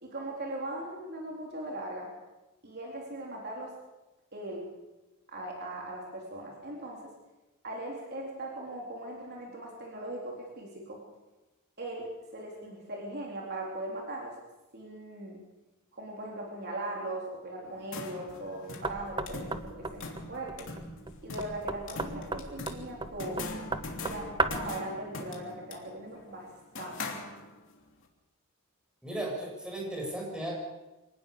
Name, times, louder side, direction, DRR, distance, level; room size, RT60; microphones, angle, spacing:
voice 1, 0.0-2.1 2.6-3.7 4.3-4.7 5.3-7.1 7.6-11.0 11.8-14.3 14.7-15.4 15.9-20.7 21.2-23.5 24.0-26.5 26.8-27.0, right 1 dB, 50° right, -1 dB, 4.0 m, -39 dB
sound 1, 17.6-27.8, left 3 dB, 60° left, 3.2 m, -42 dB
Knock, 18.8-24.8, right 3 dB, 20° right, 1.0 m, -35 dB
voice 2, 29.0-30.5, right 1 dB, 5° right, -2 dB, 7.6 m, -35 dB
25.5 x 18.0 x 6.9 m, 1.1 s
head